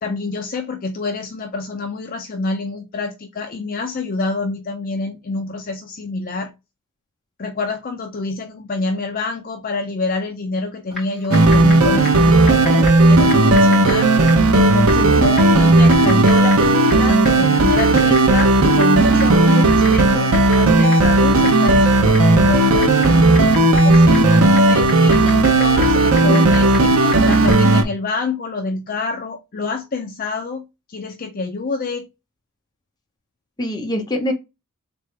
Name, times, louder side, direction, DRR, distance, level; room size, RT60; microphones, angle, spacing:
voice 1, 0.0-6.5 7.4-20.3 20.6-32.1, left 3 dB, 40° left, 0.5 m, -27 dB
Typing, 10.9-27.8, left 2 dB, ahead, 2.6 m, -36 dB
sound 1, 11.3-27.8, right 2 dB, 70° right, 0.6 m, -14 dB
voice 2, 13.5-13.8 14.9-15.3 33.6-34.3, left 1 dB, 20° left, 0.9 m, -25 dB
3.7 x 3.4 x 3.2 m
head